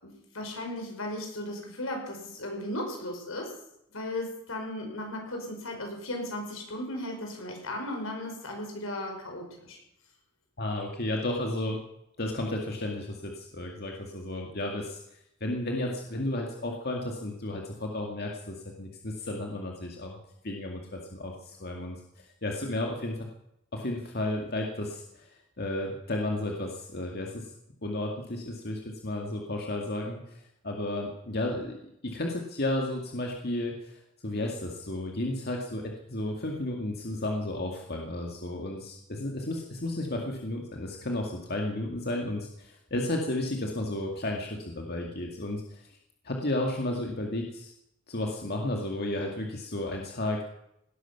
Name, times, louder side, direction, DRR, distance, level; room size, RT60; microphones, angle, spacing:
voice 1, 0.0-3.5 3.9-9.8, left 1 dB, 85° left, 2 dB, 5.3 m, -36 dB
voice 2, 10.6-11.8 12.2-15.0 15.4-20.2 20.4-23.3 23.7-25.3 25.6-27.4 27.8-33.9 34.2-45.8 46.2-47.7 48.1-50.4, left 1 dB, 50° left, 1 dB, 2.1 m, -33 dB
18.0 x 13.0 x 5.9 m, 0.78 s
head